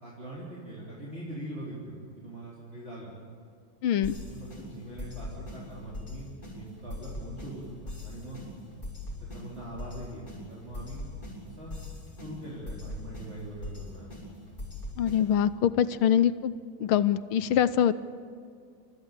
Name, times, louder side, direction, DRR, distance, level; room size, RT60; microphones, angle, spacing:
voice 1, 0.0-3.1 4.2-8.4 9.3-11.1 11.4-11.7 12.2-14.1, right 1 dB, 30° right, -7 dB, 4.2 m, -42 dB
voice 2, 3.8-4.2 15.0-16.5 16.8-17.9, left 9 dB, 90° left, 12 dB, 1.7 m, -24 dB
sound 1, 4.0-15.5, left 2 dB, 25° left, 7.4 m, -42 dB
28.5 x 14.0 x 9.0 m, 2.2 s
omnidirectional pair, 2.3 m